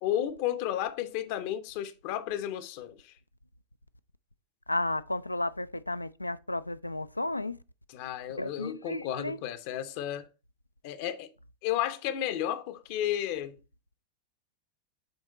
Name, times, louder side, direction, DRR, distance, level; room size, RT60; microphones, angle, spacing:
voice 1, 0.0-3.1 7.9-10.3 10.8-11.3 11.6-13.6, left 11 dB, 45° left, 0.6 m, -33 dB
voice 2, 4.7-7.6 8.4-9.4, left 2 dB, 85° left, 0.3 m, -33 dB
8.0 x 3.6 x 4.0 m
figure-of-eight pair, 90°, 0 cm